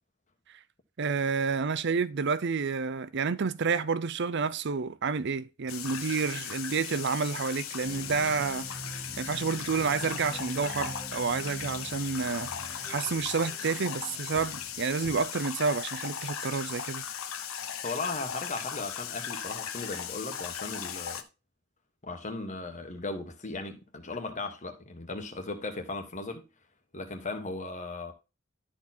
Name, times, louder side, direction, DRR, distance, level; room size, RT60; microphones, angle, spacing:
voice 1, 1.0-8.7 9.2-12.5 12.9-17.0, right 5 dB, 60° right, 0.6 m, -29 dB
sound 1, 5.7-21.2, left 8 dB, 85° left, 0.9 m, -38 dB
sound 2, 7.8-15.3, right 2 dB, 15° left, 1.8 m, -45 dB
voice 2, 17.8-21.2 22.0-26.4 26.9-28.1, left 3 dB, 35° left, 1.5 m, -37 dB
12.0 x 4.4 x 4.3 m
head